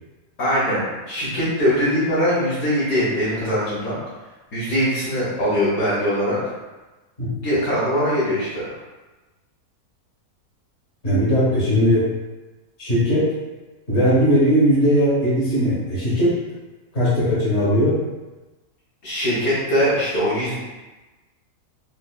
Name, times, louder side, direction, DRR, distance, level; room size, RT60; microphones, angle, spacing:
voice 1, 0.4-4.0 4.5-6.4 7.4-8.7 19.0-20.5, equal, 70° left, -10 dB, 1.6 m, -21 dB
voice 2, 11.0-12.1 12.8-13.3 13.9-16.4 16.9-18.0, equal, 45° left, -9 dB, 1.7 m, -18 dB
5.6 x 2.1 x 2.3 m, 1.2 s
omnidirectional pair, 1.6 m